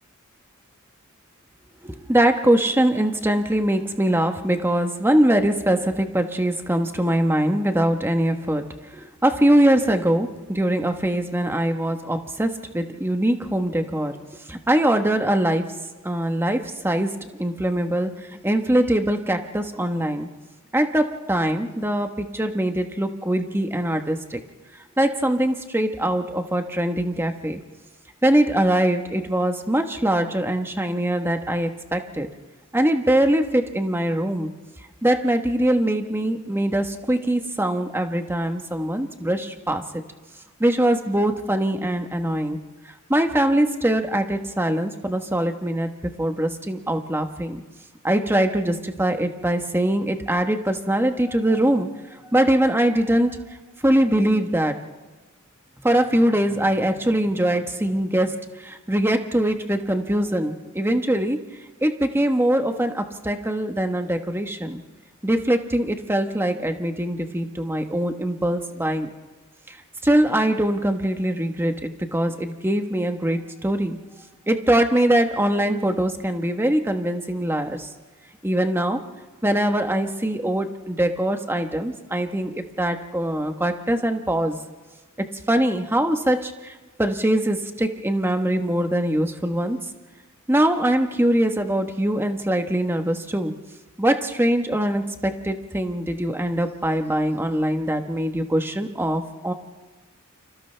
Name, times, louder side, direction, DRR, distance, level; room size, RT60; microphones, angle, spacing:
voice 1, 1.8-8.7 8.9-14.2 14.5-15.8 16.0-20.3 20.7-24.4 25.0-27.6 28.2-32.3 32.7-34.5 35.0-39.8 40.6-42.6 43.1-45.9 46.2-47.6 48.0-51.9 52.3-53.4 53.8-54.8 55.8-61.4 61.8-64.8 65.2-69.1 70.0-74.0 74.5-77.9 78.4-79.1 79.4-84.6 85.5-86.7 87.0-89.8 90.5-93.5 94.0-99.5, right 1 dB, 10° right, 6 dB, 1.2 m, -22 dB
29.5 x 27.0 x 3.4 m, 1.3 s
head